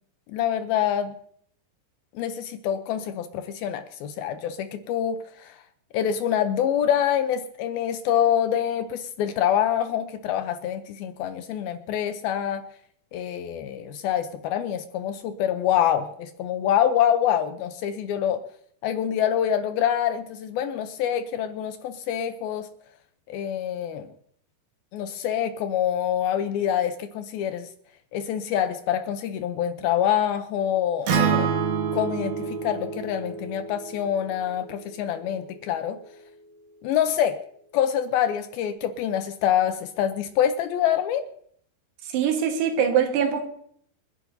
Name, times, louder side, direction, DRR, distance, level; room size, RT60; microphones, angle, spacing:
voice 1, 0.3-1.1 2.2-5.6 5.9-12.6 13.1-18.4 18.8-22.7 23.3-24.1 24.9-27.7 28.1-31.5 31.9-36.0 36.8-37.4 37.7-41.2, left 10 dB, 75° left, 9 dB, 2.4 m, -26 dB
Acoustic guitar, 31.1-35.3, right 6 dB, 60° right, 2.1 m, -28 dB
voice 2, 42.1-43.4, right 8 dB, 80° right, 4 dB, 3.4 m, -22 dB
28.5 x 10.5 x 2.7 m, 0.64 s
omnidirectional pair, 4.8 m